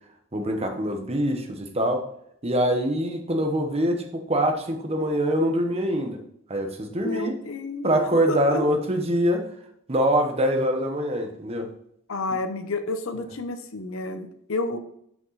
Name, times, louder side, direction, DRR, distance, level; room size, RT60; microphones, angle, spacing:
voice 1, 0.3-2.1 2.4-6.2 6.5-7.4 7.8-9.4 9.9-11.7, equal, 30° right, 5 dB, 1.0 m, -24 dB
voice 2, 7.0-8.6 12.1-14.8, left 3 dB, 75° left, 9 dB, 0.7 m, -30 dB
6.1 x 5.3 x 3.9 m, 0.71 s
head